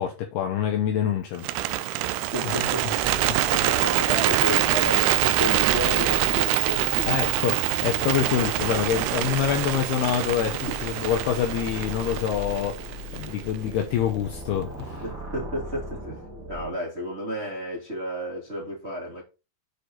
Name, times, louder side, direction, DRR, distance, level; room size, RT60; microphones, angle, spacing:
voice 1, 0.0-2.0 2.4-2.8 7.1-15.0, left 9 dB, 75° left, 2.5 m, -26 dB
Bird, 1.4-13.6, right 16 dB, 90° right, 2.4 m, -25 dB
voice 2, 2.0-7.3 8.2-8.5 10.6-11.0 13.3-13.4 14.6-19.2, equal, 20° right, 2.1 m, -33 dB
sound 1, 3.0-16.7, left 1 dB, 35° right, 1.3 m, -38 dB
8.5 x 4.9 x 4.7 m
omnidirectional pair, 5.5 m